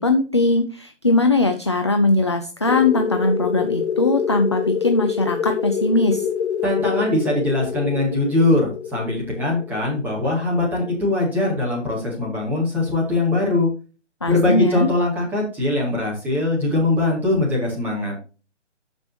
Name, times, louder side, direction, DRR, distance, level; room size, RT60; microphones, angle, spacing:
voice 1, 0.0-6.3 14.2-14.9, left 2 dB, 25° left, 5 dB, 0.5 m, -20 dB
sound 1, 2.7-11.0, left 7 dB, 65° left, 1.5 m, -26 dB
voice 2, 6.6-13.7 14.3-18.2, left 2 dB, 5° right, -4 dB, 2.2 m, -21 dB
13.0 x 5.3 x 2.8 m, 0.33 s
figure-of-eight pair, 145°, 37 cm